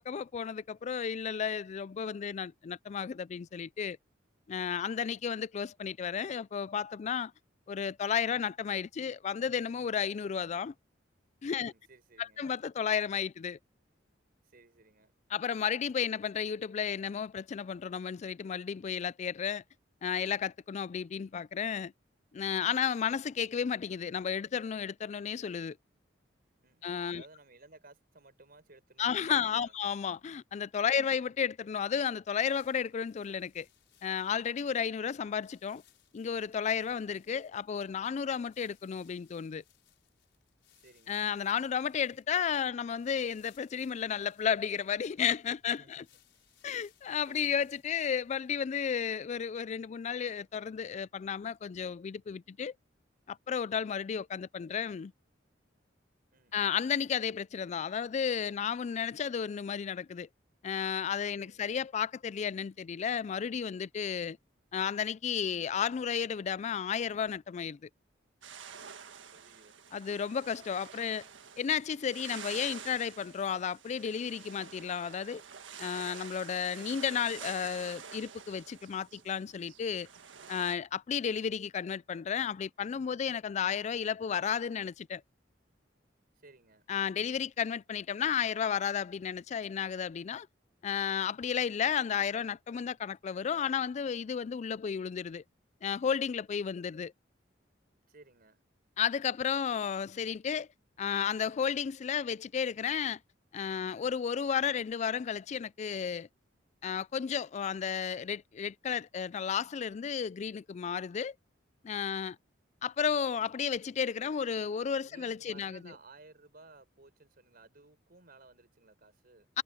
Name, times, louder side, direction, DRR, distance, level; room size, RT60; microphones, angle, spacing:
voice 1, 0.0-4.0 4.5-7.3 7.7-10.7 11.4-11.7 12.2-13.6 15.3-19.6 20.0-21.9 22.3-25.8 26.8-27.2 29.0-33.7 34.0-35.8 36.1-39.6 41.1-46.0 46.6-52.7 53.3-55.1 56.5-60.3 60.6-64.4 64.7-67.8 69.9-71.2 71.6-75.4 75.8-80.1 80.5-85.2 86.9-90.5 90.8-95.4 95.8-97.1 99.0-100.7 101.0-103.2 103.5-106.3 106.8-111.3 111.8-112.4 112.8-115.9 119.5-119.6, left 7 dB, 40° left, 0.3 m, -33 dB
voice 2, 11.6-12.4 14.4-15.1 26.6-29.7 30.9-31.3 34.6-35.1 36.8-37.1 40.7-41.5 45.6-46.1 46.3-46.7 47.3-47.8 56.3-56.8 61.4-61.7 65.3-65.8 69.3-69.8 70.8-71.1 86.4-87.3 98.1-98.6 115.0-119.5, right 3 dB, 55° right, 5.2 m, -59 dB
sound 1, 32.2-48.8, left 10 dB, 70° left, 6.5 m, -68 dB
sound 2, 68.4-80.7, right 7 dB, 90° right, 1.6 m, -48 dB
head